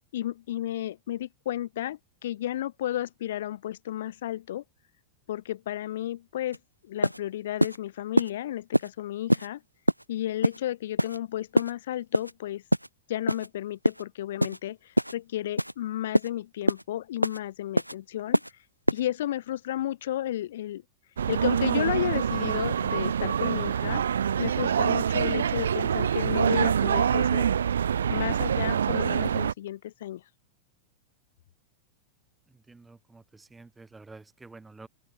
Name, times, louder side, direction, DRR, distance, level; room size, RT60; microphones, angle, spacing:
voice 1, 0.1-4.6 5.3-6.6 6.8-9.6 10.1-12.6 13.1-18.4 18.9-20.8 21.3-24.0 24.4-27.5 28.1-30.2, left 13 dB, 60° left, 4.2 m, -33 dB
sound 1, 6.5-6.6 7.0-7.2 7.6-7.8 8.2-8.3 8.7-8.9 9.3-9.5 9.9-10.0 10.4-10.6 11.0-11.2 11.6-11.7 12.1-12.3 12.7-12.9 13.3-13.5 13.8-14.0 14.4-14.6 15.0-15.1 15.6-15.7 16.1-16.3 16.7-16.8 17.2-17.4 17.8-17.9 18.3-18.5 18.9-19.0, equal, 90° right, 1.5 m, -24 dB
sound 2, 21.2-29.5, right 8 dB, 65° right, 1.1 m, -25 dB
voice 2, 32.5-34.9, right 3 dB, 10° right, 4.2 m, -50 dB
open air
figure-of-eight pair, 90°, 0 cm